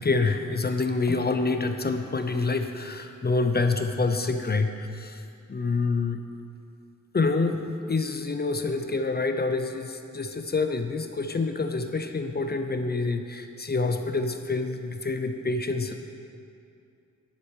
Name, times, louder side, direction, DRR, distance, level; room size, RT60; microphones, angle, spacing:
voice 1, 0.0-5.2 5.5-6.2 7.1-15.9, left 3 dB, 30° left, 7 dB, 0.6 m, -27 dB
10.0 x 8.5 x 6.3 m, 2.5 s
wide cardioid pair, 110°, 31 cm